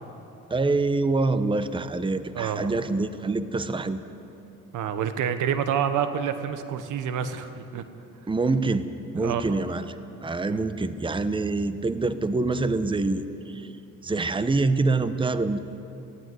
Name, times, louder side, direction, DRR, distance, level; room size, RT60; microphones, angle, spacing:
voice 1, 0.5-4.0 8.3-8.8 9.1-9.9 10.2-13.7 14.0-15.6, right 3 dB, 15° right, 11 dB, 1.0 m, -25 dB
voice 2, 2.3-2.7 4.7-7.8 9.1-9.4 10.5-10.6, right 8 dB, 85° right, 10 dB, 1.3 m, -28 dB
18.0 x 16.0 x 9.5 m, 2.8 s
cardioid pair, 90°, 30 cm